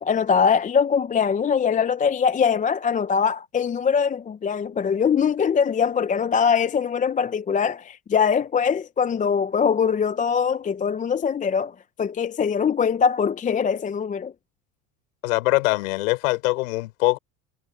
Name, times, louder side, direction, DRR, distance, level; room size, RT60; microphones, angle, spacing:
voice 1, 0.0-14.3, left 6 dB, 20° left, 0.6 m, -22 dB
voice 2, 15.2-17.2, left 20 dB, 85° left, 5.9 m, -22 dB
supercardioid pair, 115°, 41 cm